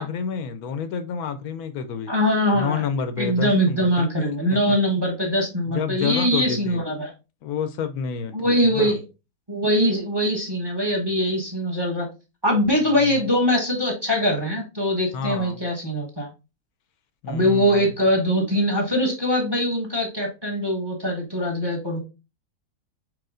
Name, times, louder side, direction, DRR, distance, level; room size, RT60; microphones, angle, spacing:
voice 1, 0.0-2.1 2.5-4.8 5.7-6.8 7.4-8.9 12.9-13.2 15.1-15.6 17.2-17.9, left 6 dB, 75° left, 1.1 m, -29 dB
voice 2, 2.1-2.8 3.2-7.1 8.3-9.0 9.5-12.1 12.4-16.3 17.3-22.0, equal, 20° right, 1.0 m, -22 dB
4.8 x 4.3 x 2.5 m
omnidirectional pair, 1.6 m